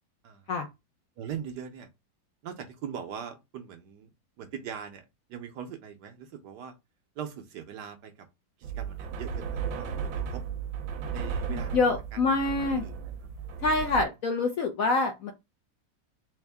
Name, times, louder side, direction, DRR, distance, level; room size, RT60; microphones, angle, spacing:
voice 1, 1.2-1.9 2.4-4.1 4.4-5.0 5.3-6.7 7.2-8.3 8.6-10.4 11.1-11.8 12.1-12.2 12.8-12.9, right 8 dB, 70° right, 1.2 m, -41 dB
sound 1, 8.6-14.0, right 6 dB, 85° right, 1.4 m, -35 dB
voice 2, 11.5-12.8 13.6-15.3, left 3 dB, 65° left, 0.8 m, -26 dB
3.6 x 3.1 x 3.4 m
omnidirectional pair, 2.0 m